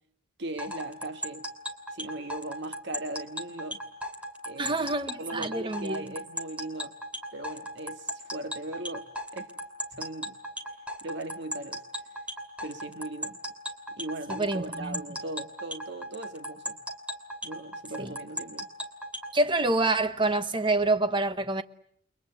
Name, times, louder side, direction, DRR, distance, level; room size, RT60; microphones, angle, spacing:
voice 1, 0.4-1.5 1.9-3.8 4.4-4.8 5.2-6.9 7.3-9.1 9.3-9.5 10.0-10.4 11.0-11.8 12.6-13.4 13.9-16.8 17.4-18.7, right 2 dB, 55° right, 1.5 m, -38 dB
sound 1, 0.6-19.3, equal, 5° right, 2.8 m, -36 dB
voice 2, 4.6-6.1 14.3-15.0 18.0-18.1 19.3-21.6, right 2 dB, 25° right, 1.0 m, -27 dB
30.0 x 22.5 x 7.9 m
head